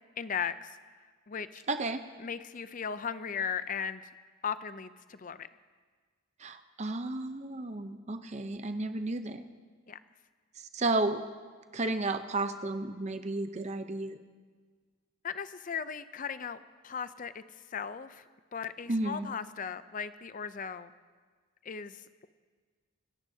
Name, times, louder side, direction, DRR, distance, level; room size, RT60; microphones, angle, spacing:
voice 1, 0.2-0.8 1.3-1.6 2.2-4.1 4.4-5.5 9.9-10.0 15.2-16.6 16.8-17.4 17.7-18.2 18.5-20.9 21.6-22.3, left 7 dB, 35° left, 13 dB, 0.5 m, -37 dB
voice 2, 1.7-2.0 6.4-9.4 10.6-11.2 11.7-14.2 18.9-19.3, right 2 dB, 30° right, 9 dB, 0.7 m, -32 dB
26.0 x 14.5 x 2.8 m, 1.5 s
head